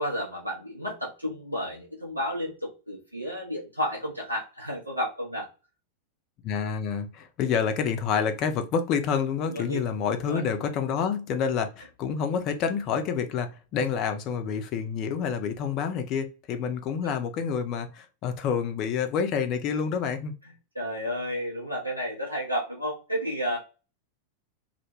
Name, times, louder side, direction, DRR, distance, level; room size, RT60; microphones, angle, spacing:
voice 1, 0.0-5.5 9.5-9.8 10.2-10.4 20.7-23.6, equal, 85° right, 0.6 m, -31 dB
voice 2, 6.4-20.3, left 6 dB, 40° left, 0.4 m, -28 dB
2.1 x 2.1 x 2.9 m
figure-of-eight pair, 90°, 0 cm